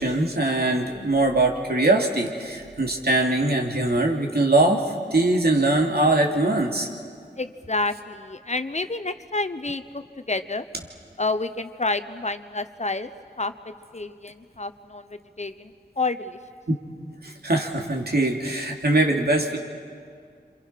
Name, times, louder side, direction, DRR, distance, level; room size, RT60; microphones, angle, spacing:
voice 1, 0.0-6.9 16.7-16.8 17.2-19.6, right 2 dB, 65° right, 0 dB, 2.9 m, -22 dB
voice 2, 7.4-10.6 11.2-13.1 13.4-16.4, left 3 dB, 40° left, 11 dB, 1.0 m, -29 dB
28.0 x 26.5 x 5.9 m, 2.2 s
wide cardioid pair, 40°, 18 cm